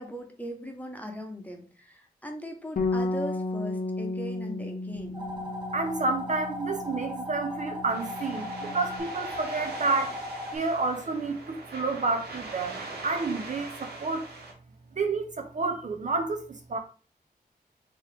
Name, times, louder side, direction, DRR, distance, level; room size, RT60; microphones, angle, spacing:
voice 1, 0.0-5.2, equal, 10° left, 1.0 m, -39 dB
Bass guitar, 2.8-9.0, left 2 dB, 60° left, 0.7 m, -34 dB
sound 1, 5.1-10.6, left 1 dB, 30° right, 1.0 m, -37 dB
voice 2, 5.7-10.1 10.5-12.8 13.0-14.3 14.9-16.8, right 3 dB, 50° right, 0.6 m, -30 dB
sound 2, 7.9-14.5, right 3 dB, 80° right, 1.1 m, -42 dB
3.6 x 2.9 x 3.3 m
cardioid pair, 65°, 16 cm